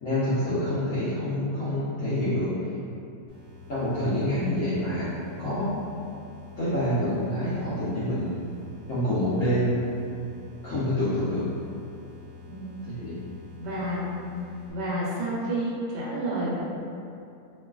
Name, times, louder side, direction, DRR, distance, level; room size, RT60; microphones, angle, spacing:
voice 1, 0.0-2.5 3.7-5.1 5.4-5.7 6.6-8.3 8.9-9.8 10.6-11.5 12.8-13.2, left 1 dB, 65° left, -13 dB, 0.8 m, -27 dB
sound 1, 3.3-14.7, left 7 dB, 55° right, 0.7 m, -48 dB
voice 2, 12.5-12.9 13.6-14.2 14.7-16.6, right 1 dB, 75° right, -6 dB, 1.1 m, -30 dB
3.0 x 2.3 x 2.3 m, 2.6 s
omnidirectional pair, 2.0 m